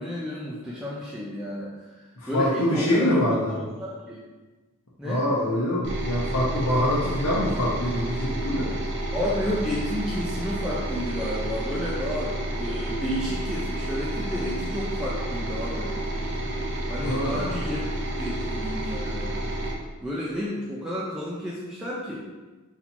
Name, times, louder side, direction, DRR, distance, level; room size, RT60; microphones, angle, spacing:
voice 1, 0.0-2.0 2.3-3.1 3.5-4.2 5.0-5.2 9.1-15.9 16.9-17.8 18.1-19.3 20.0-22.3, equal, 5° right, -7 dB, 0.5 m, -31 dB
voice 2, 2.2-3.5 5.0-8.7 17.0-17.5, left 1 dB, 65° left, -8 dB, 0.9 m, -25 dB
sound 1, 5.8-19.7, right 1 dB, 55° right, 0.8 m, -30 dB
4.3 x 2.8 x 4.3 m, 1.2 s
head